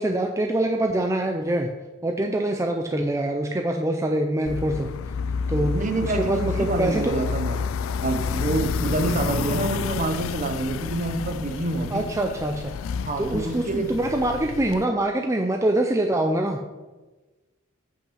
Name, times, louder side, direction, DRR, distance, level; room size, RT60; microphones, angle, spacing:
voice 1, 0.0-1.7 2.0-4.9 5.5-5.7 6.0-7.1 11.9-12.7 13.2-16.6, right 1 dB, 15° right, 3 dB, 0.5 m, -24 dB
sound 1, 4.5-14.8, left 6 dB, 75° left, 0.3 m, -30 dB
voice 2, 5.6-12.1 12.9-13.9, right 2 dB, 40° right, 7 dB, 0.8 m, -27 dB
8.2 x 5.6 x 5.7 m, 1.2 s
head